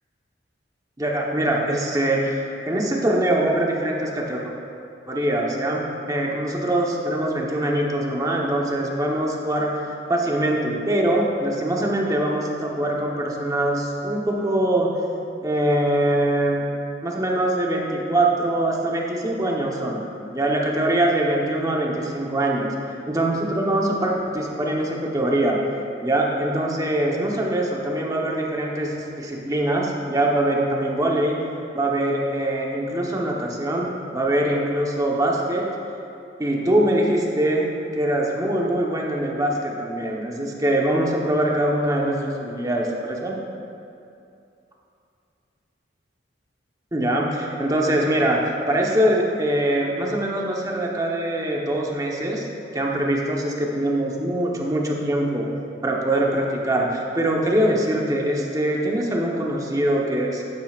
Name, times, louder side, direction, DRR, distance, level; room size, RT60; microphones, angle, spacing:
voice 1, 1.0-4.4 5.1-5.8 6.1-14.9 15.4-16.6 17.0-20.0 20.3-22.7 23.1-25.6 26.0-31.4 31.7-35.6 36.4-37.7 37.9-43.4 46.9-52.5 52.7-55.5 55.8-60.4, right 1 dB, 20° right, -2 dB, 1.0 m, -23 dB
11.5 x 9.3 x 2.4 m, 2.6 s
head